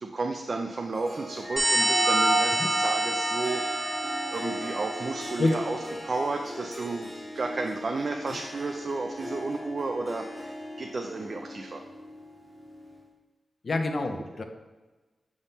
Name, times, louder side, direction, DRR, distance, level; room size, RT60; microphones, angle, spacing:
voice 1, 0.0-5.8 6.0-11.8, right 3 dB, 45° right, 3 dB, 0.4 m, -32 dB
Harp, 0.9-13.1, left 1 dB, ahead, 0.8 m, -41 dB
sound 1, 1.4-6.1, right 2 dB, 35° left, 1.4 m, -30 dB
sound 2, 1.6-5.8, right 1 dB, 25° right, 1.0 m, -30 dB
voice 2, 13.6-14.4, left 2 dB, 50° left, 5 dB, 0.6 m, -27 dB
7.3 x 3.6 x 4.1 m, 1.2 s
wide cardioid pair, 125°, 0 cm